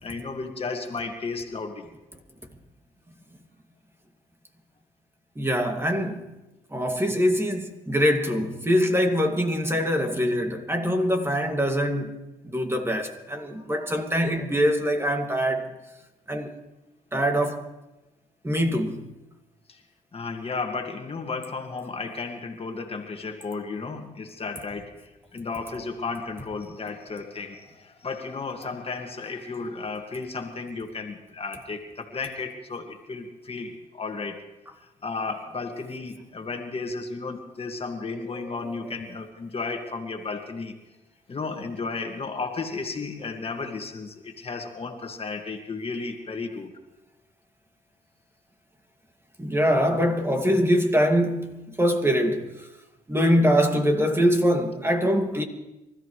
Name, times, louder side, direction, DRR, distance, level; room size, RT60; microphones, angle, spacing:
voice 1, 0.0-1.9 19.7-19.8 20.1-34.5 34.8-40.7 41.3-46.7, left 4 dB, 40° left, 2.0 m, -34 dB
voice 2, 5.4-6.3 6.7-12.2 12.4-15.7 16.3-16.5 17.1-17.6 18.4-19.0 38.4-38.8 49.4-52.7 53.1-55.4, equal, 15° right, 2.3 m, -23 dB
26.5 x 13.5 x 3.3 m
supercardioid pair, 60°, 15 cm